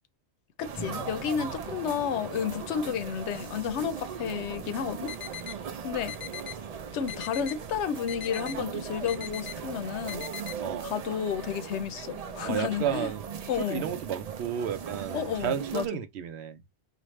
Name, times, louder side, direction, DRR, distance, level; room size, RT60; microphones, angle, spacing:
voice 1, 0.6-5.1 5.8-6.1 6.9-10.3 10.8-13.1 13.5-13.8 15.1-15.9, left 8 dB, 90° left, 0.9 m, -31 dB
sound 1, 0.6-15.9, right 7 dB, 60° right, 0.4 m, -39 dB
Drum, 0.8-4.3, left 3 dB, 20° left, 0.6 m, -48 dB
sound 2, 5.1-5.6 6.1-6.6 7.1-7.6 8.1-8.6 9.1-9.6 10.1-10.6, left 10 dB, 60° left, 0.3 m, -39 dB
voice 2, 12.4-13.2 13.5-16.6, right 9 dB, 75° right, 0.8 m, -32 dB
4.3 x 2.5 x 3.1 m
omnidirectional pair, 1.1 m